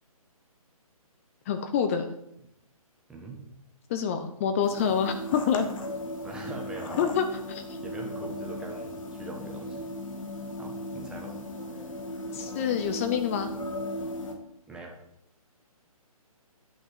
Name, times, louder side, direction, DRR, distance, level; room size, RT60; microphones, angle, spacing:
voice 1, 1.5-2.1 3.9-5.7 7.0-7.8 12.3-13.5, left 7 dB, 25° left, 8 dB, 0.7 m, -27 dB
voice 2, 3.1-3.4 6.2-7.1 7.8-9.8 10.6-11.3 11.7-11.9 14.7-15.0, right 3 dB, 5° right, -1 dB, 1.4 m, -42 dB
sound 1, 4.6-14.3, left 1 dB, 60° left, 2.0 m, -37 dB
10.5 x 6.0 x 6.7 m, 0.78 s
hypercardioid pair, 155°, 19 cm